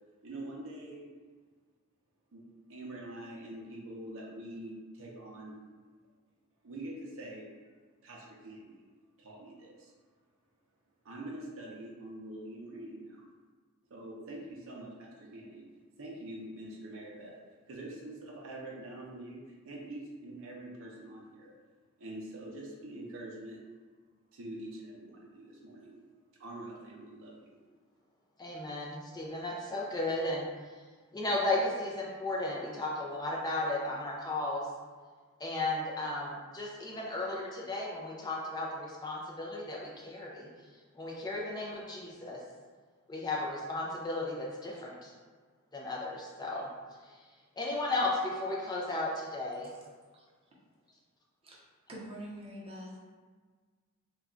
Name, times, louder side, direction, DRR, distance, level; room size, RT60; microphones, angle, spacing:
voice 1, 0.2-1.1 2.3-2.4 2.7-5.6 6.6-7.5 8.0-8.8 9.2-9.9 11.0-13.2 13.9-15.6 16.0-17.4 17.7-21.5 22.0-23.6 24.3-26.0 26.4-27.5, right 1 dB, 65° right, -2 dB, 0.6 m, -45 dB
voice 2, 28.4-30.5 31.1-34.7 35.4-40.5 40.9-42.4 43.1-45.1 45.7-46.7 47.6-49.7, left 2 dB, 20° left, -3 dB, 0.4 m, -34 dB
voice 3, 51.9-53.0, equal, 25° right, -5 dB, 0.6 m, -45 dB
2.3 x 2.2 x 3.6 m, 1.5 s
head